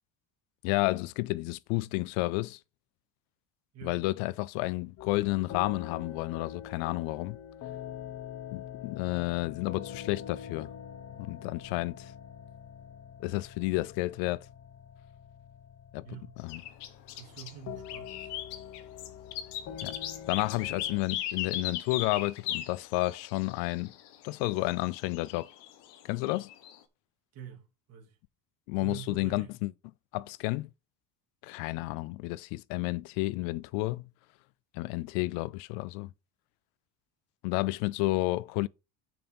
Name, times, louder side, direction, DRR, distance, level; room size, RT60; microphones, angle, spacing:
voice 1, 0.6-2.6 3.8-7.4 8.5-10.7 11.2-12.1 13.2-14.4 15.9-16.0 16.4-16.6 19.8-20.0 20.3-23.9 24.2-25.5 26.1-26.5 28.7-29.7 30.1-30.7 31.4-34.1 34.7-36.1 37.4-38.7, left 20 dB, 90° left, 0.6 m, -31 dB
sound 1, 5.0-21.0, left 9 dB, 35° left, 0.9 m, -45 dB
voice 2, 16.0-16.4 17.1-18.3 27.3-28.2 28.8-29.6 38.1-38.2, right 10 dB, 35° right, 2.6 m, -46 dB
sound 2, 16.5-17.5 17.9-26.8, left 11 dB, 65° left, 1.4 m, -38 dB
7.0 x 5.7 x 5.4 m
cardioid pair, 170°, 44 cm